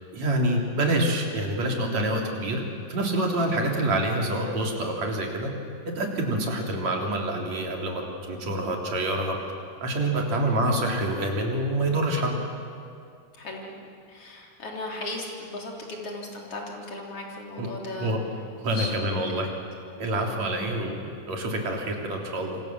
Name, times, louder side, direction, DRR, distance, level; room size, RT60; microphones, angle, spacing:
voice 1, 0.1-2.6 2.9-5.5 6.0-9.4 9.8-12.4 17.6-17.7 18.0-18.2 18.6-19.5 20.0-22.6, right 1 dB, 55° right, 0 dB, 4.5 m, -26 dB
voice 2, 13.4-13.8 14.1-18.1 18.7-19.3, left 2 dB, 40° left, -1 dB, 4.5 m, -37 dB
27.0 x 26.5 x 7.5 m, 2.4 s
omnidirectional pair, 3.9 m